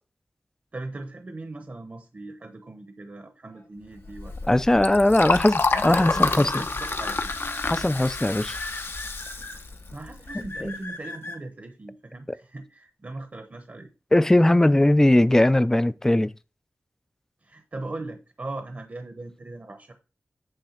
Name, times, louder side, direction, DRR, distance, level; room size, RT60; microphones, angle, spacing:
voice 1, 0.7-4.6 5.2-5.4 5.7-7.2 9.9-13.9 17.4-20.0, right 2 dB, 45° right, 0.9 m, -39 dB
Liquid, 4.0-10.7, left 3 dB, 55° left, 0.7 m, -29 dB
sound 1, 4.3-4.6 5.8-7.8 8.5-9.5 10.3-11.4, left 2 dB, 80° left, 2.4 m, -37 dB
voice 2, 4.5-6.7 7.7-8.6 14.1-16.3, left 1 dB, 10° left, 0.4 m, -19 dB
9.0 x 3.2 x 5.7 m
wide cardioid pair, 85°, 5 cm